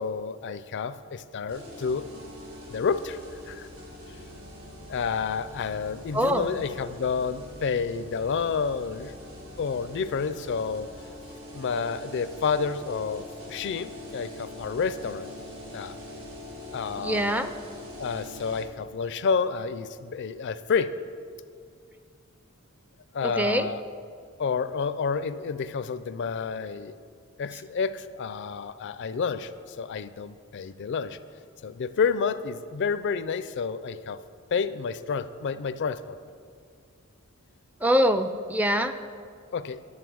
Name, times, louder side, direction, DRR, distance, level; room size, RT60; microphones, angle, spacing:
voice 1, 0.0-2.1 2.7-3.2 3.5-3.7 4.9-9.1 9.6-10.9 11.5-15.3 15.7-16.0 16.7-17.4 18.0-20.9 23.1-23.8 24.4-27.0 27.4-31.2 31.6-34.2 34.5-36.2 39.5-39.8, left 5 dB, 55° left, 14 dB, 0.4 m, -29 dB
sound 1, 1.5-18.6, left 1 dB, 75° right, 3.1 m, -43 dB
voice 2, 6.1-6.5 17.0-17.5 23.2-23.7 37.8-38.9, equal, 10° right, 9 dB, 0.4 m, -24 dB
11.0 x 7.3 x 6.2 m, 2.2 s
head